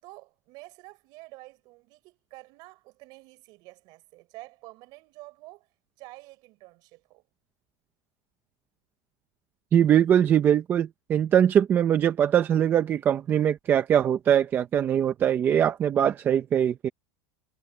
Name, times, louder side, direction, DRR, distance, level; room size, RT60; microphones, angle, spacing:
voice 1, 0.0-5.7 6.0-7.2, right 22 dB, 40° right, 6.5 m, -48 dB
voice 2, 9.7-16.9, right 9 dB, 20° right, 0.7 m, -22 dB
supercardioid pair, 170°, 10 cm